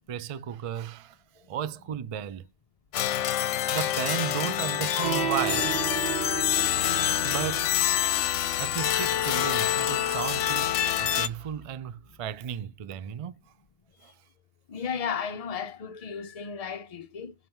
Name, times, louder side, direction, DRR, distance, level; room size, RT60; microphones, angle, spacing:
voice 1, 0.1-1.2 1.5-2.5 3.6-5.8 7.2-7.7 8.6-13.4 14.0-14.1, right 9 dB, 65° right, 0.3 m, -34 dB
sound 1, 2.9-11.3, left 11 dB, 75° left, 0.9 m, -26 dB
sound 2, 5.0-11.7, right 8 dB, 40° right, 1.1 m, -36 dB
voice 2, 14.7-17.3, left 7 dB, 55° left, 0.4 m, -34 dB
6.0 x 4.5 x 5.4 m
omnidirectional pair, 1.3 m